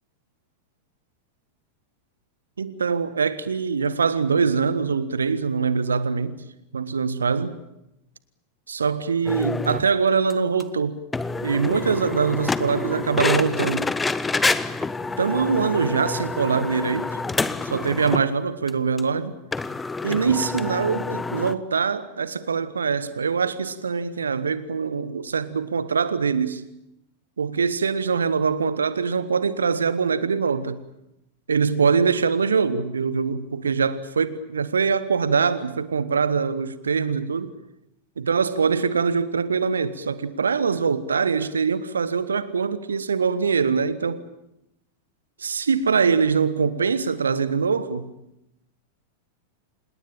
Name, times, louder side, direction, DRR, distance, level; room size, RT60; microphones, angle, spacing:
voice 1, 2.6-6.4 6.7-7.6 8.7-11.0 11.4-13.9 15.2-17.2 17.6-19.3 20.0-26.6 27.4-30.8 31.5-37.5 38.2-44.2 45.4-48.1, right 5 dB, 70° right, 1.4 m, -23 dB
sound 1, 9.3-9.9 10.3-10.4 10.6-10.7 11.1-18.3 18.7-18.8 19.0-19.1 19.5-21.6, left 3 dB, 10° left, 1.0 m, -27 dB
26.5 x 20.5 x 8.9 m
figure-of-eight pair, 90°, 0 cm